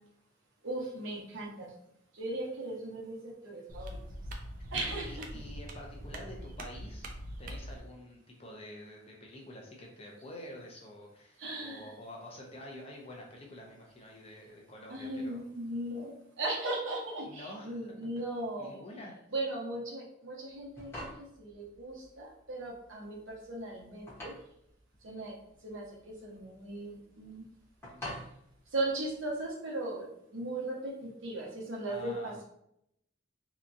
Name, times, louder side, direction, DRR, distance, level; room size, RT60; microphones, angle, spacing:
voice 1, 0.6-1.7 2.1-4.0 4.7-5.3 11.4-11.9 14.9-18.8 19.3-24.3 25.0-25.3 25.6-27.4 28.7-32.4, right 2 dB, 75° right, -2 dB, 0.9 m, -38 dB
sound 1, 3.7-7.8, right 1 dB, 45° right, 0.4 m, -42 dB
voice 2, 4.8-7.1 7.4-15.4 17.2-18.2 18.6-19.2 27.9-28.2 31.8-32.3, left 1 dB, 30° left, -1 dB, 0.6 m, -48 dB
sound 2, 20.5-29.5, left 1 dB, 15° left, 0.9 m, -48 dB
2.9 x 2.3 x 2.5 m, 0.75 s
head